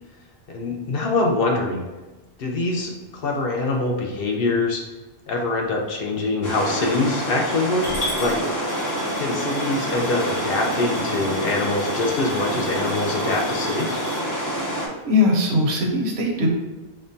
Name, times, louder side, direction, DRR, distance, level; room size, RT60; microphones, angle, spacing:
voice 1, 0.5-1.8 2.4-4.8 5.3-7.9 8.2-8.4 9.2-14.0, left 2 dB, 65° left, 0 dB, 0.8 m, -24 dB
sound 1, 6.4-14.9, equal, 25° left, 0.4 m, -27 dB
Coin (dropping) / Glass, 7.8-14.2, left 1 dB, 85° left, 1.9 m, -36 dB
voice 2, 15.0-16.5, left 2 dB, 75° right, 1 dB, 0.9 m, -20 dB
5.0 x 2.1 x 2.6 m, 1.2 s
omnidirectional pair, 1.1 m